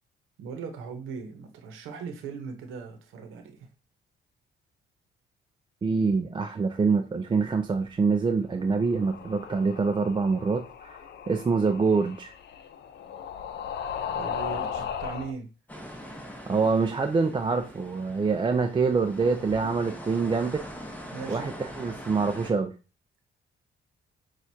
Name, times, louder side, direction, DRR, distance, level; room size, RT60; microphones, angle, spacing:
voice 1, 0.4-3.5 14.1-15.5 21.1-21.5, right 5 dB, 90° right, 0.9 m, -39 dB
voice 2, 5.8-11.0 11.3-12.3 16.5-20.6 21.3-22.7, right 4 dB, 25° right, 0.4 m, -25 dB
sound 1, 8.6-15.3, left 8 dB, 60° left, 0.5 m, -37 dB
sound 2, 15.7-22.5, equal, 10° left, 1.0 m, -42 dB
6.1 x 2.4 x 2.7 m
cardioid pair, 90°, 20 cm